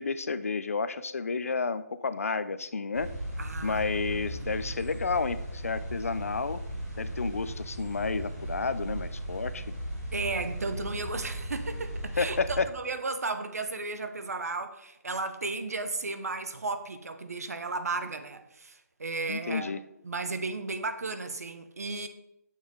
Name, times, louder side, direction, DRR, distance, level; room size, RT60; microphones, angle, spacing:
voice 1, 0.0-3.1 3.6-6.6 7.0-9.6 12.2-12.7 19.3-19.8, left 4 dB, 55° left, 0.4 m, -31 dB
sound 1, 2.9-12.6, right 1 dB, 10° right, 2.4 m, -37 dB
voice 2, 3.4-4.8 10.1-19.7 20.0-22.1, right 3 dB, 60° right, 0.8 m, -34 dB
7.1 x 6.1 x 3.8 m
hypercardioid pair, 180°, 9 cm